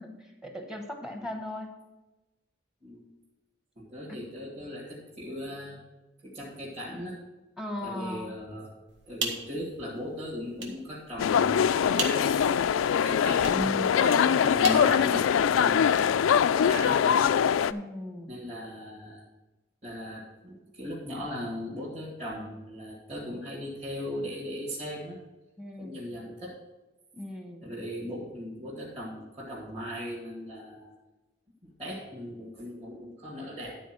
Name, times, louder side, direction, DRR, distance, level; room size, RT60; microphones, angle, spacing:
voice 1, 0.0-1.8 4.1-4.2 7.6-8.4 17.7-18.3 25.6-26.0 27.1-27.7, left 1 dB, 5° right, 3 dB, 1.0 m, -38 dB
voice 2, 3.8-5.8 6.2-7.2 7.8-8.7 9.1-12.5 13.0-16.3 16.6-17.2 18.3-19.2 19.8-25.2 25.8-26.6 27.6-30.9 31.6-33.8, equal, 30° right, -7 dB, 2.1 m, -38 dB
sound 1, 8.9-15.7, right 4 dB, 60° right, 1.5 m, -40 dB
sound 2, 11.2-17.7, left 8 dB, 85° left, 0.3 m, -23 dB
12.0 x 4.4 x 6.2 m, 1.1 s
head